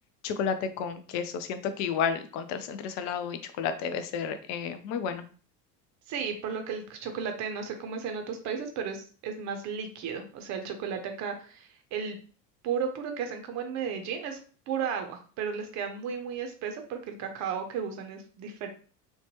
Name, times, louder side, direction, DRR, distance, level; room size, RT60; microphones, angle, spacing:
voice 1, 0.2-5.2, left 7 dB, 40° left, 10 dB, 0.4 m, -31 dB
voice 2, 6.1-12.2 12.6-14.4 14.7-18.7, right 6 dB, 35° right, 5 dB, 0.6 m, -34 dB
3.0 x 2.2 x 2.8 m, 0.40 s
figure-of-eight pair, 70°, 48 cm